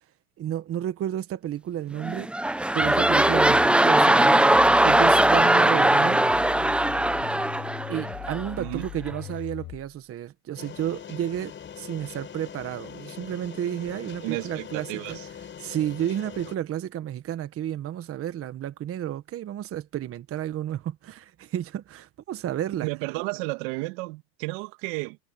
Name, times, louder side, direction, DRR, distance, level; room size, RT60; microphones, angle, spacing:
voice 1, 0.4-2.3 2.7-6.2 7.9-15.2 15.6-22.9, right 11 dB, 30° right, 1.6 m, -31 dB
sound 1, 2.0-8.5 9.1-9.2, right 1 dB, 5° right, 0.7 m, -20 dB
sound 2, 2.8-10.0, left 16 dB, 45° left, 7.3 m, -39 dB
sound 3, 10.6-16.6, left 8 dB, 25° left, 6.0 m, -42 dB
voice 2, 14.2-15.2 22.8-25.2, right 25 dB, 55° right, 2.1 m, -32 dB
supercardioid pair, 115°, 44 cm